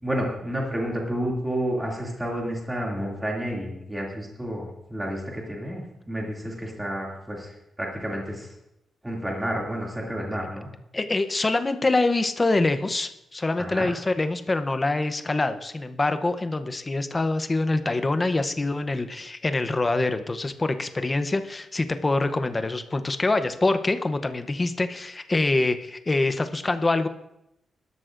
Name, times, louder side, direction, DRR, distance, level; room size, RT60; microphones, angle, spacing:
voice 1, 0.0-5.8 6.1-8.5 9.0-10.7 13.6-13.9, equal, 10° right, -2 dB, 2.4 m, -30 dB
voice 2, 10.9-27.1, left 2 dB, 20° left, 10 dB, 0.7 m, -25 dB
20.5 x 12.5 x 2.5 m, 0.86 s
wide cardioid pair, 160°, 0 cm